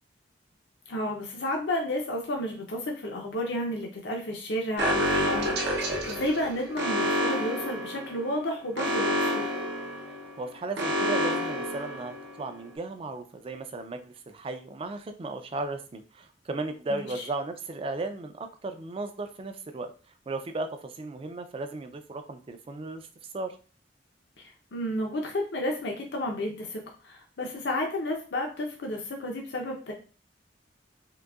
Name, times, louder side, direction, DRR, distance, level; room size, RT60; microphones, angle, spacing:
voice 1, 0.9-9.5 16.9-17.3 24.4-29.9, left 1 dB, 75° left, 1 dB, 0.6 m, -32 dB
Alarm, 4.8-12.5, left 1 dB, 65° right, 0.7 m, -29 dB
voice 2, 10.4-19.9 20.3-23.1 23.3-23.6, right 2 dB, 30° right, 8 dB, 0.3 m, -35 dB
3.8 x 2.6 x 2.3 m, 0.37 s
head